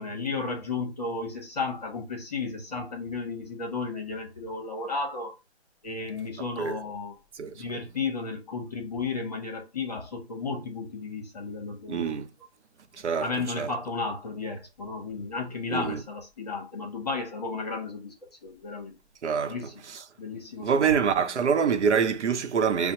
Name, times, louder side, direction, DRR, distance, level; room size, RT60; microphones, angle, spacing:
voice 1, 0.0-5.3 5.8-7.1 7.5-12.1 13.2-18.1 18.4-19.0 19.5-19.7 20.2-20.9, left 4 dB, 35° left, 0.8 m, -33 dB
voice 2, 11.9-12.3 13.0-13.3 13.6-13.7 15.7-16.0 19.2-19.6 19.9-20.0 20.6-22.9, right 6 dB, 80° right, 0.7 m, -25 dB
5.2 x 2.0 x 2.9 m
hypercardioid pair, 170°, 35 cm